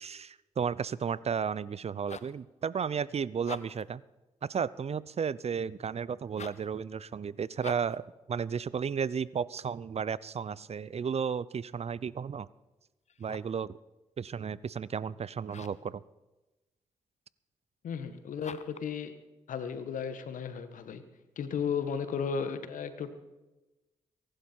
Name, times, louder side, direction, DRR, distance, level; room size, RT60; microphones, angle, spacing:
voice 1, 0.0-4.0 4.5-8.0 8.3-12.5 13.2-13.7 14.2-16.0, right 6 dB, 50° right, 20 dB, 0.6 m, -33 dB
sound 1, 1.8-2.4 3.3-3.9 6.3-6.7 7.6-8.0 13.1-13.6 15.5-15.9 18.4-18.9, left 6 dB, 55° left, 0.9 m, -46 dB
voice 2, 17.8-19.1 19.5-21.0 21.4-23.1, left 6 dB, 75° left, 11 dB, 1.5 m, -34 dB
23.0 x 11.5 x 4.5 m, 1.1 s
supercardioid pair, 40°, 14 cm